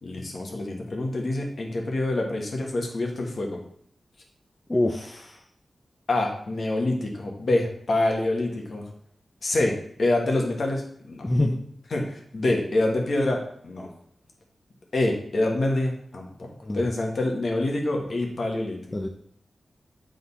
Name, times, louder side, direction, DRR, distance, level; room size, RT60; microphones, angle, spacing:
voice 1, 0.0-3.6 6.1-8.8 9.4-11.3 11.9-13.9 14.9-18.8, left 2 dB, 65° left, 1 dB, 1.5 m, -26 dB
voice 2, 4.7-5.4 11.2-11.6 16.6-16.8 18.9-19.1, left 1 dB, 25° left, 3 dB, 0.6 m, -25 dB
7.7 x 3.9 x 4.1 m, 0.63 s
wide cardioid pair, 80°, 0 cm